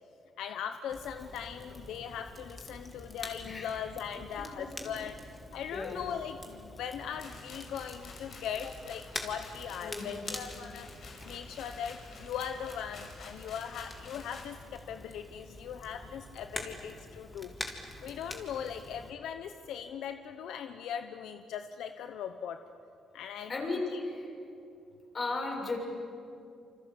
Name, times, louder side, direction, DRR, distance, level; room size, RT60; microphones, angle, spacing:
voice 1, 0.4-5.2 5.5-10.9 11.2-17.5 18.0-22.6 23.1-24.0, left 8 dB, 80° left, 8 dB, 1.0 m, -39 dB
Crackle, 0.9-19.1, left 2 dB, 20° left, 3.5 m, -46 dB
voice 2, 5.7-6.0 9.8-10.2 23.5-24.3 25.1-25.8, left 3 dB, 40° left, 1 dB, 7.2 m, -35 dB
sound 1, 7.2-14.5, left 4 dB, 60° left, 5.8 m, -51 dB
28.0 x 26.0 x 8.2 m, 2.7 s
cardioid pair, 90°, 0 cm